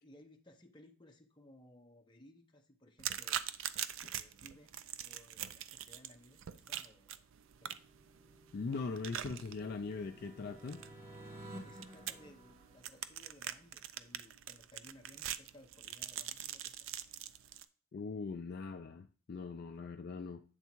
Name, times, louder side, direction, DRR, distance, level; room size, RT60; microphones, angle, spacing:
voice 1, 0.0-3.4 4.0-7.3 7.6-7.8 11.6-16.9, left 1 dB, 20° left, 2 dB, 0.8 m, -61 dB
sound 1, 3.0-17.6, right 10 dB, 60° right, 0.4 m, -44 dB
sound 2, 7.4-13.3, right 1 dB, 25° right, 1.8 m, -53 dB
voice 2, 8.5-10.8 17.9-20.4, left 4 dB, 45° left, 6 dB, 0.3 m, -41 dB
8.1 x 3.6 x 4.5 m, 0.41 s
head